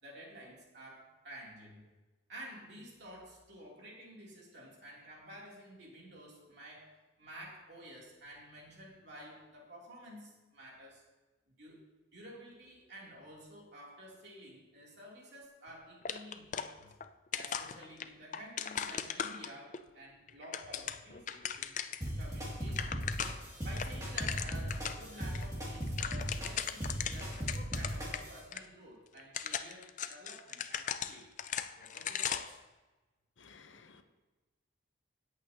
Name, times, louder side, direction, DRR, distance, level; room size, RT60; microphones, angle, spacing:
voice 1, 0.0-1.9 2.3-6.9 7.2-11.0 11.5-11.8 12.1-16.9 17.4-21.8 22.2-23.1 23.6-31.4 31.8-32.6, equal, 55° right, -4 dB, 3.2 m, -51 dB
sound 1, 16.1-17.1 17.3-19.8 20.3-22.1 22.4-22.5 22.7-23.5 23.8-25.0 25.3-25.4 25.7-28.2 28.5-28.6 29.2-32.6, left 8 dB, 40° left, 0.4 m, -38 dB
sound 2, 22.0-28.4, equal, 15° right, 2.5 m, -38 dB
voice 2, 33.4-34.0, left 5 dB, 75° left, 8 dB, 0.8 m, -57 dB
17.0 x 8.3 x 2.9 m, 1.2 s
head